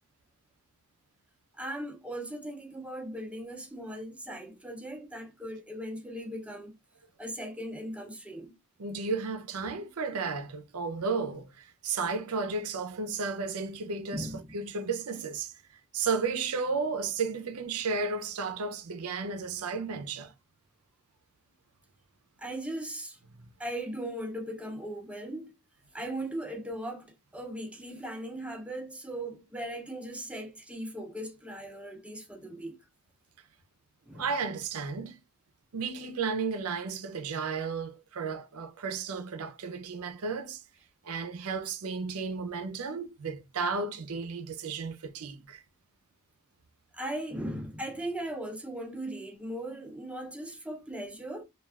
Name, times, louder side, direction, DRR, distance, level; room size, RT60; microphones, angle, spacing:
voice 1, 1.6-6.8 7.2-8.6 14.1-14.5 22.4-23.2 23.6-25.5 25.9-32.8 34.1-34.3 46.9-51.4, right 1 dB, 5° right, 0.5 m, -38 dB
voice 2, 8.8-15.6 15.9-20.3 23.3-23.5 34.1-35.2 35.7-40.6 41.0-45.6, right 4 dB, 75° right, 0.6 m, -33 dB
3.2 x 2.4 x 2.3 m
head